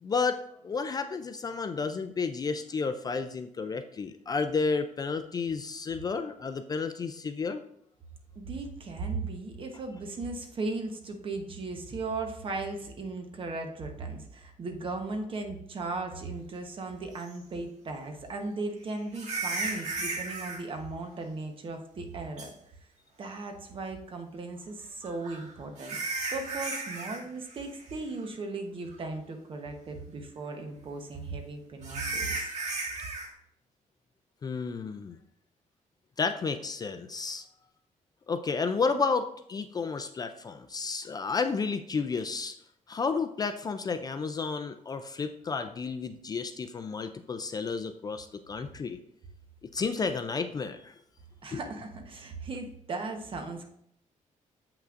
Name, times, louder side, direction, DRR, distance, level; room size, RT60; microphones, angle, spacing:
voice 1, 0.0-0.4 0.6-7.6 34.4-35.2 36.2-37.5 38.3-42.5 42.9-49.0 49.7-50.9 51.5-51.6, left 4 dB, 30° left, 8 dB, 0.3 m, -31 dB
voice 2, 8.3-22.5 23.2-32.5 51.4-53.6, right 3 dB, 40° right, 4 dB, 1.0 m, -37 dB
sound 1, 17.3-17.4 19.1-20.6 22.4-22.5 25.0-27.2 27.5-27.8 28.2-28.3 28.9-29.0 31.8-33.3, right 3 dB, 60° right, 1.7 m, -34 dB
7.7 x 5.8 x 2.5 m, 0.72 s
cardioid pair, 155°, 13 cm